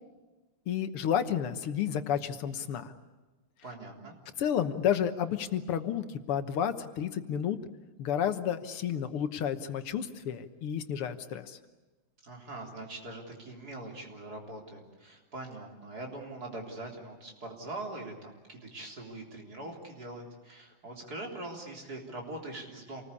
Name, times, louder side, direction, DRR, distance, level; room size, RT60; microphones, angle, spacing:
voice 1, 0.7-2.9 4.4-7.6 8.0-11.6, left 9 dB, 85° left, 9 dB, 2.1 m, -31 dB
voice 2, 3.6-4.2 12.2-23.0, right 2 dB, 45° right, 0 dB, 4.1 m, -42 dB
27.5 x 20.0 x 8.5 m, 1.2 s
omnidirectional pair, 2.4 m